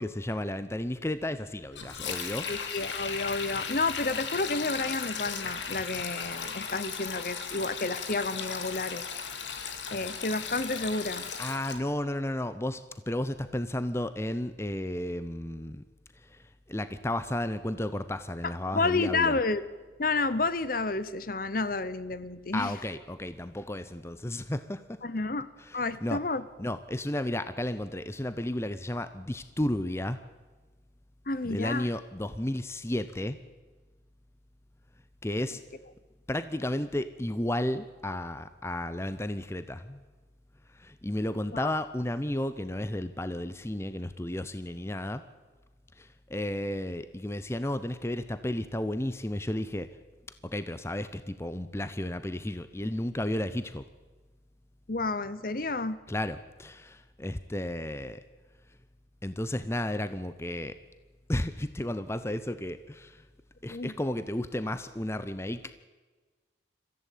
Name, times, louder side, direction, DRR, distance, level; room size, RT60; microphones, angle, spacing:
voice 1, 0.0-2.5 11.4-15.8 16.1-19.4 22.5-25.0 25.6-26.2 26.6-30.2 31.4-33.4 35.2-35.6 36.3-40.0 40.7-45.2 46.0-49.9 50.4-53.8 56.1-58.2 59.2-60.8 61.3-63.3 63.6-65.7, left 1 dB, 15° left, 12 dB, 0.7 m, -33 dB
Sink (filling or washing), 1.7-11.8, left 6 dB, 75° left, 2.3 m, -36 dB
voice 2, 2.5-9.1 9.9-11.3 18.4-19.6 20.0-22.7 25.0-25.5 25.7-26.4 31.3-31.9 41.5-41.7 54.9-56.0 63.7-63.9, left 3 dB, 50° left, 15 dB, 1.0 m, -30 dB
24.0 x 15.0 x 8.5 m, 1.3 s
head